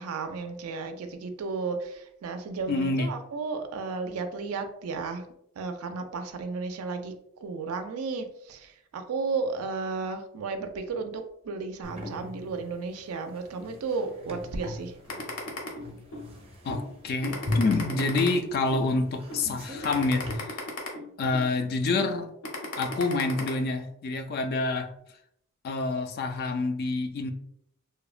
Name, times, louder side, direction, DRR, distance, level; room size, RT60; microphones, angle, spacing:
voice 1, 0.0-5.2 5.6-7.1 7.4-14.9, right 4 dB, 80° right, 7 dB, 0.4 m, -33 dB
voice 2, 2.7-3.1 16.6-20.6 21.2-22.3 22.8-24.9 25.6-27.3, left 3 dB, 45° left, 7 dB, 0.3 m, -27 dB
sound 1, 11.8-20.3, left 1 dB, 25° right, 0.5 m, -38 dB
sound 2, 15.1-16.3 16.7-16.9 17.2-18.9 19.3-19.5 19.8-21.5 21.9-22.1 22.4-23.5, left 2 dB, 85° left, 0.7 m, -36 dB
2.7 x 2.1 x 2.4 m, 0.73 s
head